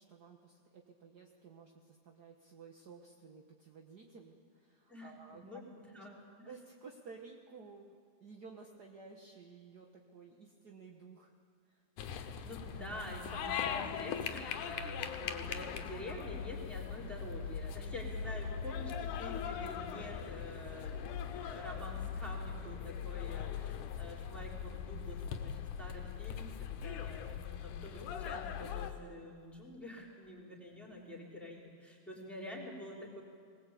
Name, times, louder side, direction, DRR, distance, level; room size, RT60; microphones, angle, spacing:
voice 1, 0.0-5.6 6.0-6.1 6.4-11.3 11.7-11.9, right 4 dB, 50° right, 1 dB, 1.2 m, -54 dB
voice 2, 4.9-5.6 5.9-6.5 12.1-33.2, left 1 dB, ahead, -2 dB, 4.0 m, -48 dB
sound 1, 12.0-28.9, left 7 dB, 80° left, 2.6 m, -40 dB
20.5 x 20.5 x 8.4 m, 2.2 s
omnidirectional pair, 3.6 m